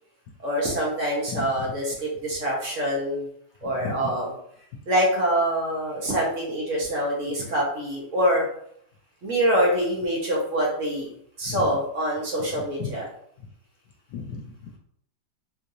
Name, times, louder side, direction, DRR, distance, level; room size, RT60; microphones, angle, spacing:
voice 1, 0.4-1.9 2.2-3.2 3.6-4.3 4.9-8.5 9.2-11.1 11.4-13.0, equal, 50° right, -3 dB, 1.3 m, -25 dB
voice 2, 1.3-1.7 3.6-4.2 4.7-4.8 11.4-11.8 12.5-12.9 13.4-13.5 14.1-14.8, left 5 dB, 75° left, 3 dB, 1.2 m, -35 dB
3.8 x 3.1 x 2.7 m, 0.67 s
omnidirectional pair, 1.8 m